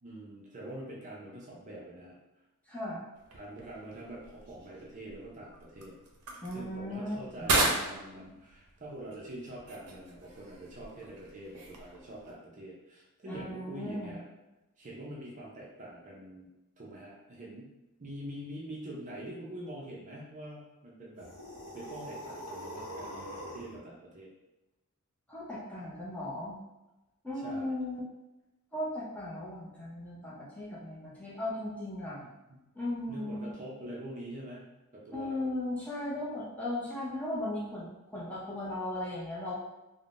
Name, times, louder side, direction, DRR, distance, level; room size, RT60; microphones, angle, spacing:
voice 1, 0.0-2.2 3.3-6.0 6.5-14.2 14.8-16.5 16.8-17.7 18.0-21.3 21.7-24.3 27.4-27.7 32.2-32.7 33.1-34.6 34.9-35.5, right 1 dB, 35° right, -4 dB, 0.5 m, -45 dB
voice 2, 2.7-3.0 6.4-7.5 13.3-14.2 25.3-26.6 27.2-28.0 28.7-32.2 32.7-33.5 35.1-39.6, left 1 dB, 5° left, -7 dB, 0.6 m, -37 dB
sound 1, 3.1-12.3, right 2 dB, 85° right, 0.6 m, -37 dB
sound 2, 21.2-23.8, equal, 80° left, 0.7 m, -43 dB
3.4 x 2.1 x 2.4 m, 1.0 s
head